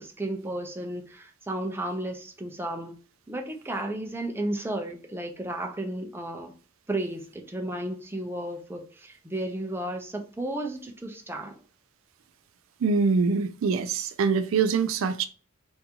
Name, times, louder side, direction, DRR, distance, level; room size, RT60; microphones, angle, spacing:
voice 1, 0.0-3.0 3.3-6.5 6.9-11.6, right 1 dB, 10° right, 0.6 m, -33 dB
voice 2, 12.8-15.3, right 5 dB, 70° right, 0.4 m, -24 dB
3.5 x 2.6 x 2.8 m
head